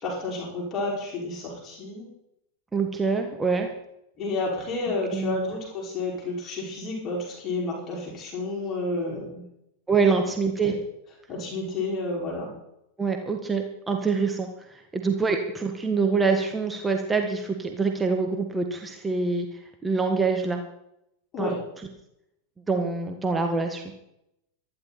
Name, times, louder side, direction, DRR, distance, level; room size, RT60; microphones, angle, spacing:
voice 1, 0.0-2.1 4.2-9.4 10.1-10.2 10.6-10.7 11.3-12.5 21.3-21.6, left 2 dB, 30° left, -2 dB, 5.4 m, -30 dB
voice 2, 2.7-3.7 5.1-5.5 9.9-10.7 13.0-14.5 14.9-19.5 19.8-20.6 21.4-21.5 22.7-23.8, right 4 dB, 10° right, 4 dB, 1.7 m, -25 dB
24.0 x 11.0 x 4.3 m, 0.81 s
figure-of-eight pair, 90°, 0 cm